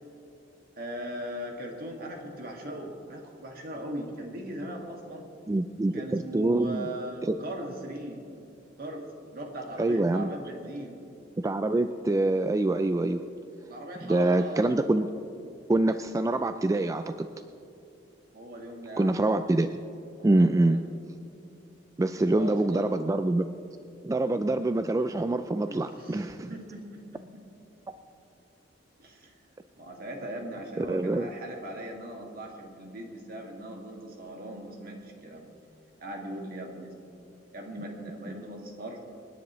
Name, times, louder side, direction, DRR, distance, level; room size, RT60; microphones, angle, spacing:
voice 1, 0.8-5.3 5.9-8.2 8.8-9.0 9.3-11.0 13.7-14.7 18.3-19.1 20.2-20.8 22.1-23.0 25.7-27.4 29.0-29.3 29.8-35.5 36.0-36.9 37.5-39.0, right 1 dB, 55° right, 1 dB, 2.0 m, -39 dB
voice 2, 5.5-6.9 7.2-7.4 9.8-10.3 11.4-13.2 14.0-15.1 15.7-17.3 19.0-19.7 20.2-20.8 22.0-23.5 24.0-26.5 30.8-31.3 38.3-38.4, right 2 dB, 20° right, 9 dB, 0.3 m, -25 dB
27.5 x 10.0 x 3.1 m, 2.7 s
head